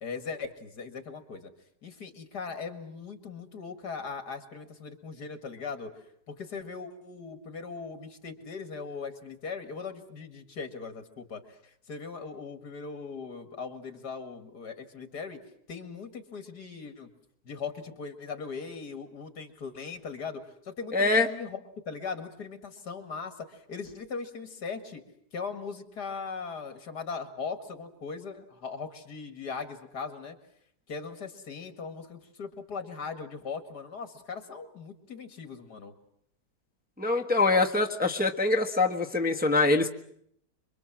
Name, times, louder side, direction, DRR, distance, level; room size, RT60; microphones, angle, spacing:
voice 1, 0.0-1.5 1.8-15.4 15.7-17.1 17.4-21.6 21.9-25.0 25.3-30.4 30.9-35.9, left 5 dB, 70° left, 8 dB, 2.7 m, -39 dB
voice 2, 20.9-21.3 37.0-39.9, left 3 dB, 5° right, 2 dB, 1.1 m, -24 dB
26.0 x 23.5 x 7.5 m, 0.70 s
omnidirectional pair, 1.8 m